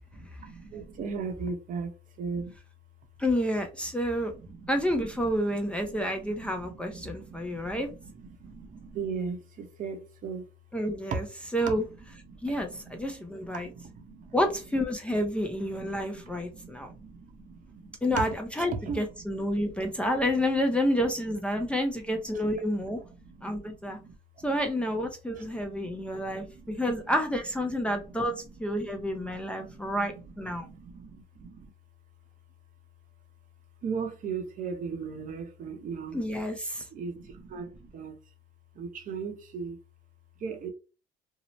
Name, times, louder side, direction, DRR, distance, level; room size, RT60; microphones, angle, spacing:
voice 1, 0.2-1.9 2.2-2.5 4.3-4.7 5.3-10.4 11.1-11.2 11.8-14.4 15.4-18.3 18.6-20.1 21.3-21.8 22.3-25.1 25.3-27.1 27.8-31.7 33.8-36.2 36.9-38.2 38.7-39.8 40.4-40.7, right 5 dB, 50° right, 0.7 m, -39 dB
voice 2, 3.2-4.3 4.7-7.9 10.7-11.2 11.5-11.8 12.4-13.7 14.3-16.9 18.0-18.3 18.6-23.0 23.4-24.0 24.4-28.3 28.6-30.7 36.1-36.8, equal, 5° left, 0.5 m, -29 dB
2.7 x 2.0 x 3.0 m
cardioid pair, 110°, 17 cm